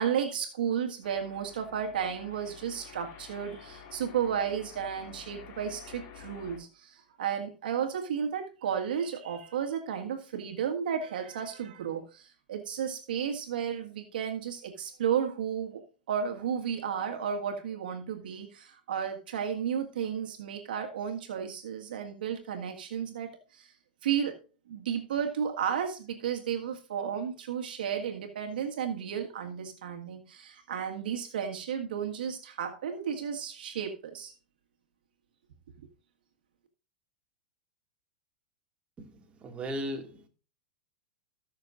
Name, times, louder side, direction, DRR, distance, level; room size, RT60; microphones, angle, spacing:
voice 1, 0.0-23.7 24.0-24.4 24.7-34.3, right 8 dB, 75° right, 1.8 m, -33 dB
sound 1, 1.0-6.6, left 7 dB, 45° left, 2.5 m, -50 dB
voice 2, 39.0-40.3, equal, 25° right, 2.2 m, -37 dB
19.5 x 6.6 x 2.6 m
hypercardioid pair, 110°, 5 cm